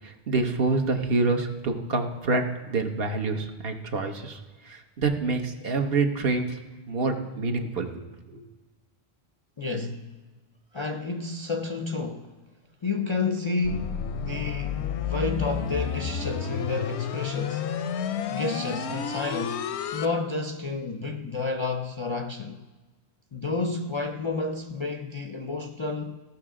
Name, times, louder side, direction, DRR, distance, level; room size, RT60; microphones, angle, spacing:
voice 1, 0.0-4.4 4.6-6.6 6.9-8.4, right 3 dB, 65° right, 1.1 m, -27 dB
voice 2, 9.6-10.2 10.7-12.3 12.8-17.7 18.3-19.7 19.9-22.6 23.3-26.2, left 3 dB, 45° left, 0.4 m, -30 dB
sound 1, 13.6-20.1, left 7 dB, 85° left, 0.9 m, -31 dB
16.0 x 5.9 x 3.7 m
omnidirectional pair, 1.1 m